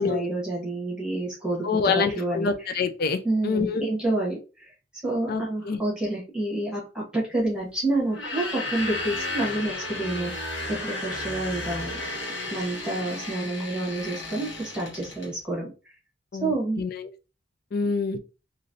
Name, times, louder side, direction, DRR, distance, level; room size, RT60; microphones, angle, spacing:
voice 1, 0.0-2.7 3.2-4.7 5.0-10.3 10.7-12.0 12.5-15.7 16.4-16.8, right 2 dB, 5° right, 1.3 m, -29 dB
voice 2, 1.6-3.9 5.3-5.8 16.3-17.1 17.7-18.2, left 4 dB, 50° left, 0.4 m, -26 dB
sound 1, 8.1-15.3, left 2 dB, 75° left, 1.2 m, -33 dB
3.0 x 2.6 x 2.6 m
head